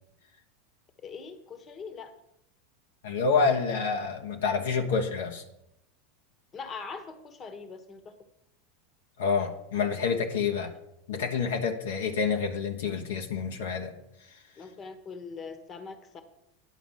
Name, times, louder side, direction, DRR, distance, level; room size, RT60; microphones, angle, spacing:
voice 1, 1.0-2.1 6.5-8.1 14.6-16.2, left 5 dB, 35° left, 9 dB, 1.3 m, -42 dB
voice 2, 3.0-5.4 9.2-10.7 11.1-14.0, left 5 dB, 75° left, 3 dB, 1.2 m, -28 dB
10.5 x 5.1 x 7.3 m, 0.83 s
hypercardioid pair, 90°, 0 cm